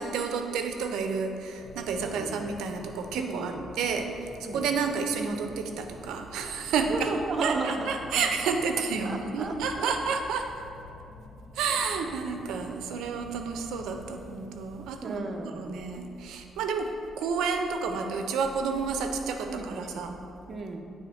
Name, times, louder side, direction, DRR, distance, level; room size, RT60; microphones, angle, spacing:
voice 1, 0.0-7.1 7.4-10.5 11.5-15.2 15.6-16.9 17.2-20.1, right 5 dB, 85° right, 5 dB, 0.5 m, -30 dB
sound 1, 1.6-14.9, left 2 dB, 75° left, 0.9 m, -48 dB
voice 2, 2.0-2.5 3.1-3.7 4.4-4.7 6.9-8.5 9.0-9.9 15.0-15.8 19.5-20.1 20.5-20.8, right 3 dB, 45° right, 4 dB, 0.7 m, -35 dB
9.0 x 3.4 x 4.2 m, 2.5 s
cardioid pair, 90°, 0 cm